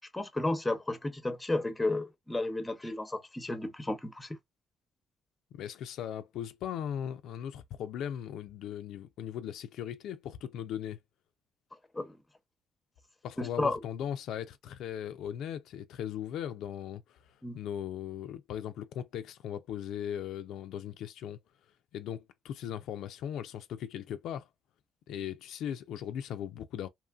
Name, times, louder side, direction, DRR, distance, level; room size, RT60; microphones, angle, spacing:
voice 1, 0.1-4.4 11.9-12.2 13.4-13.8 17.4-17.6, left 2 dB, 15° left, 0.7 m, -33 dB
voice 2, 5.5-11.0 13.2-21.4 21.9-24.5 25.1-26.9, left 10 dB, 85° left, 0.3 m, -38 dB
2.9 x 2.5 x 2.3 m
cardioid pair, 90°, 0 cm